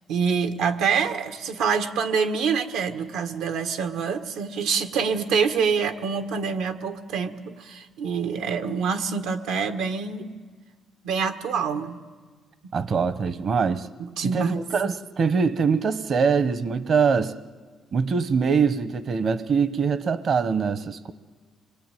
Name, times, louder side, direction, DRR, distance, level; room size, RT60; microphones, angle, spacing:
voice 1, 0.1-10.3 11.0-12.0 14.0-14.6, right 6 dB, 90° right, 7 dB, 1.6 m, -26 dB
voice 2, 12.7-13.9 14.2-17.3 17.9-21.1, right 5 dB, 55° right, 14 dB, 1.0 m, -23 dB
26.5 x 22.0 x 9.3 m, 1.5 s
cardioid pair, 90°, 0 cm